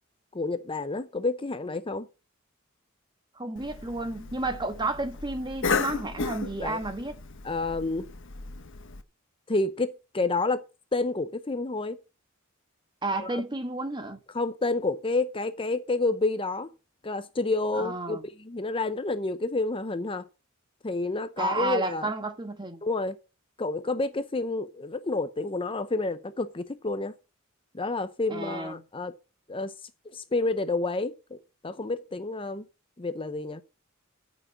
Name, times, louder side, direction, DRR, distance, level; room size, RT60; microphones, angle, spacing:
voice 1, 0.3-2.1 6.6-6.8 7.4-8.1 9.5-10.6 10.9-12.0 13.2-13.4 14.3-16.7 17.0-20.2 20.8-22.1 22.8-23.2 23.6-27.1 27.7-29.1 29.5-29.7 30.1-32.6 33.0-33.6, left 3 dB, 25° left, 0.7 m, -29 dB
voice 2, 3.3-7.2 13.0-14.2 17.8-18.2 21.4-22.8 28.3-28.8, right 2 dB, 20° right, 1.5 m, -31 dB
Cough, 3.6-9.0, left 4 dB, 65° left, 1.3 m, -34 dB
14.5 x 6.3 x 5.9 m
head